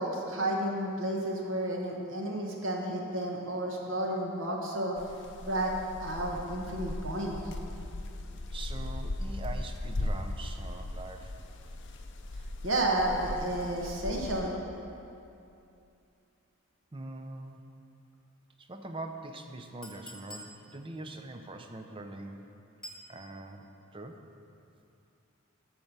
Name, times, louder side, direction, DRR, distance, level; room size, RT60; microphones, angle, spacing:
voice 1, 0.0-5.0 5.4-5.7 6.0-7.4 12.6-14.6, right 1 dB, 60° right, -1 dB, 1.2 m, -31 dB
sound 1, 5.0-14.4, left 1 dB, 55° left, 0.6 m, -38 dB
voice 2, 8.5-11.3 16.9-17.6 18.6-22.4 23.1-23.7 23.9-24.2, right 2 dB, 25° right, 5 dB, 0.6 m, -43 dB
Chink clink, 19.8-20.6 22.8-23.1, left 1 dB, 5° left, 1.5 m, -45 dB
13.0 x 4.5 x 6.7 m, 2.6 s
head